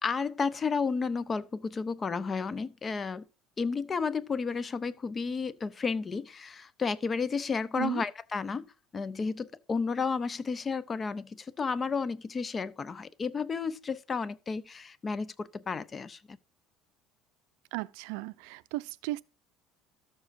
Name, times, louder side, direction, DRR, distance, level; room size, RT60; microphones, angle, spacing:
voice 1, 0.0-3.2 3.6-16.4, left 5 dB, 25° left, 0.5 m, -32 dB
voice 2, 17.7-19.2, right 20 dB, 90° right, 0.4 m, -35 dB
13.0 x 7.1 x 2.6 m
cardioid pair, 145°, 0 cm